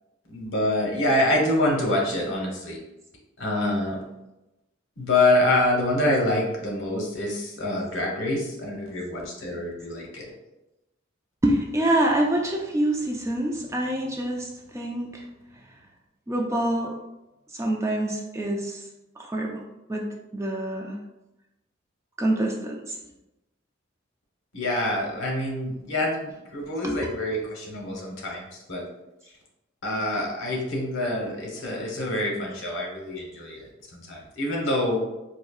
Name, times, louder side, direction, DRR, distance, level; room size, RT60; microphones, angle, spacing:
voice 1, 0.3-2.8 3.4-4.0 5.0-10.2 24.5-28.8 29.8-33.6 33.9-35.0, left 1 dB, 80° left, -1 dB, 1.0 m, -26 dB
voice 2, 11.4-14.5 14.7-15.2 16.3-17.0 17.5-18.8 19.3-19.6 19.9-20.1 20.3-21.0 22.2-23.0 26.8-27.0 34.7-35.0, right 1 dB, 15° right, 0 dB, 0.3 m, -26 dB
4.1 x 2.7 x 2.3 m, 0.96 s
head